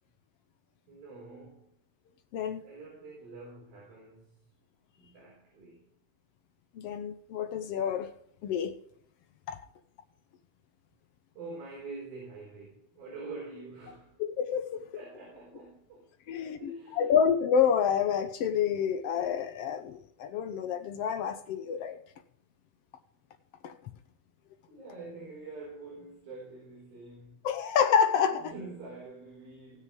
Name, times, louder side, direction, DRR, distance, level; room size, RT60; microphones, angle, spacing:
voice 1, 0.9-1.8 2.6-4.4 5.0-5.9 11.4-14.2 14.8-17.2 24.7-27.5 28.3-29.8, right 3 dB, 80° right, 6.0 m, -46 dB
voice 2, 2.3-2.6 6.7-8.1 8.4-8.8 9.5-9.6 14.2-14.9 16.3-16.6 17.0-22.0 23.6-23.7 27.4-28.5, left 7 dB, 80° left, 1.3 m, -28 dB
18.0 x 6.8 x 4.8 m
omnidirectional pair, 4.1 m